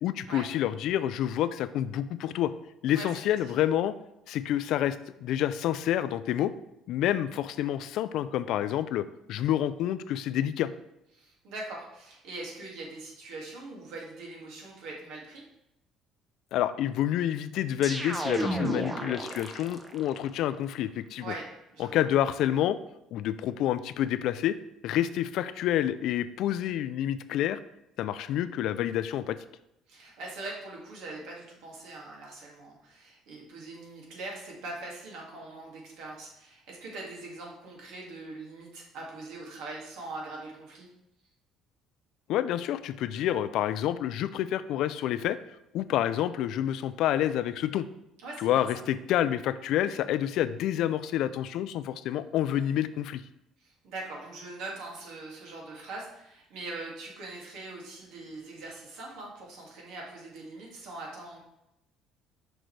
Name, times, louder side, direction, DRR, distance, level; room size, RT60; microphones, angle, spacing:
voice 1, 0.0-2.5 2.8-4.0 4.3-6.5 6.9-10.7 16.5-21.3 21.8-22.8 23.1-24.6 24.8-27.6 28.0-29.4 42.3-45.4 45.7-47.9 48.4-53.2, left 11 dB, 70° left, 13 dB, 0.3 m, -28 dB
voice 2, 2.9-3.3 11.1-15.4 21.2-22.0 29.9-40.9 48.2-48.7 53.6-61.4, right 2 dB, 80° right, -2 dB, 2.0 m, -42 dB
sound 1, 17.8-20.1, right 1 dB, 15° right, 0.6 m, -32 dB
6.1 x 5.1 x 3.2 m, 0.84 s
cardioid pair, 125°, 0 cm